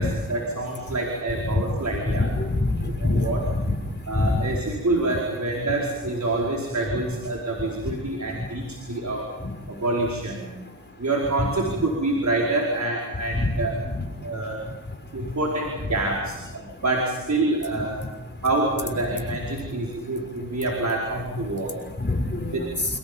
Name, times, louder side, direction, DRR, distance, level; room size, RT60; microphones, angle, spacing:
voice 1, 0.0-2.3 3.0-3.4 4.1-9.2 9.7-10.5 11.0-13.7 14.2-14.6 15.1-18.0 18.4-21.7 22.5-22.7, right 2 dB, 55° right, -1 dB, 5.0 m, -26 dB
voice 2, 2.1-3.2 3.6-3.7 4.1-4.3 11.4-11.5 13.3-13.5 22.0-22.6, left 2 dB, 35° left, 3 dB, 6.1 m, -24 dB
30.0 x 29.5 x 5.4 m, 1.2 s
wide cardioid pair, 80°, 32 cm